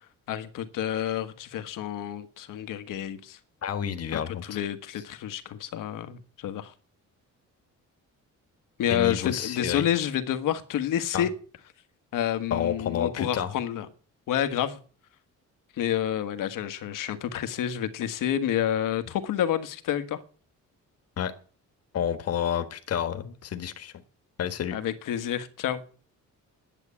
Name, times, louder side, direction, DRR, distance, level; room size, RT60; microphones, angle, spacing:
voice 1, 0.3-3.4 4.1-6.7 8.8-11.3 12.1-13.9 14.3-14.8 15.8-20.2 24.7-25.8, left 10 dB, 85° left, 1.5 m, -29 dB
voice 2, 3.6-4.5 8.9-9.9 11.1-11.2 12.5-13.5 21.2-21.3 21.9-23.9 24.4-24.8, left 9 dB, 50° left, 1.5 m, -30 dB
11.0 x 8.3 x 8.4 m
cardioid pair, 155°, 32 cm